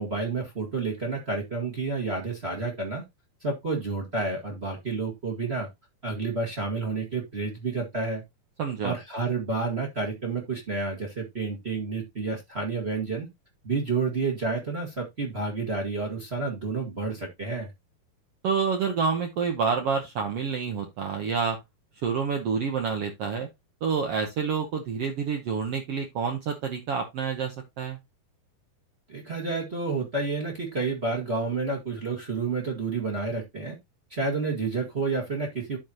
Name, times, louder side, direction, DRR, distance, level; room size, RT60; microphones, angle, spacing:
voice 1, 0.0-3.0 3.4-5.7 6.0-8.2 8.8-13.3 13.6-17.7 29.1-33.8 34.1-35.8, right 3 dB, 30° right, 1.1 m, -30 dB
voice 2, 8.6-9.0 18.4-21.6 22.0-23.5 23.8-28.0, right 6 dB, 85° right, 1.3 m, -28 dB
12.5 x 4.7 x 2.9 m
omnidirectional pair, 4.3 m